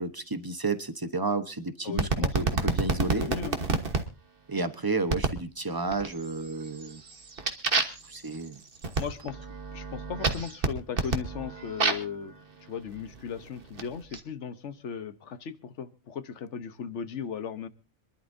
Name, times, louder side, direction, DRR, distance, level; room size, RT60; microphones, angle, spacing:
voice 1, 0.0-3.3 4.5-7.0 8.1-8.6, right 3 dB, 20° right, 10 dB, 1.0 m, -31 dB
voice 2, 1.8-2.5 3.1-3.6 9.0-9.4 9.7-12.4 12.7-17.7, left 7 dB, 75° left, 13 dB, 1.3 m, -37 dB
sound 1, 2.0-4.0 5.1-5.4 5.9-6.4 6.8-12.2 13.0-14.2, right 3 dB, 50° right, 1.5 m, -29 dB
26.5 x 11.5 x 2.7 m, 0.32 s
omnidirectional pair, 1.2 m